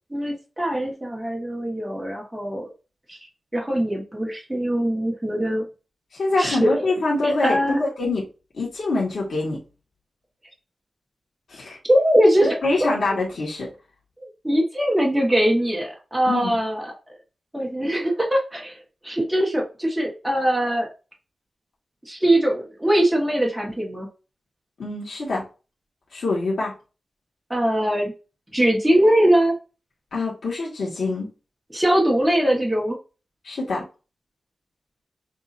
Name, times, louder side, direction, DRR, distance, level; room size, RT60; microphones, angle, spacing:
voice 1, 0.1-2.7 3.1-3.2 3.5-5.6 6.4-6.9 7.2-7.8 11.9-12.9 14.2-16.9 17.5-18.8 19.0-20.9 22.1-24.1 27.5-28.1 28.5-29.6 31.7-33.0, right 1 dB, 5° right, -2 dB, 1.4 m, -21 dB
voice 2, 6.1-8.3 8.5-9.6 11.5-11.8 12.6-13.7 16.2-16.6 24.8-25.4 26.1-26.7 30.1-31.3 33.4-33.8, left 2 dB, 90° left, -4 dB, 1.7 m, -25 dB
6.9 x 2.8 x 2.6 m, 0.32 s
wide cardioid pair, 170°, 0 cm